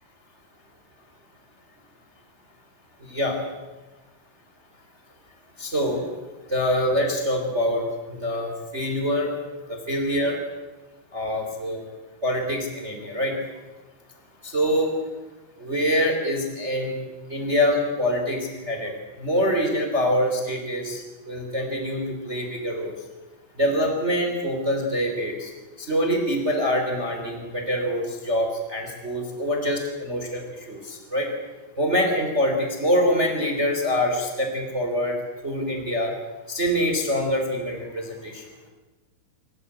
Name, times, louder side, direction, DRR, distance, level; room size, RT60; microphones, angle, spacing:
voice 1, 3.0-3.4 5.6-6.1 6.4-9.3 9.7-10.4 11.1-11.8 12.2-13.4 14.4-14.9 15.6-17.0 17.3-23.1 23.5-25.5 25.8-31.3 31.8-35.2 35.4-36.1 36.5-38.5, equal, 15° right, 3 dB, 2.7 m, -25 dB
27.0 x 15.5 x 8.7 m, 1.2 s
omnidirectional pair, 5.8 m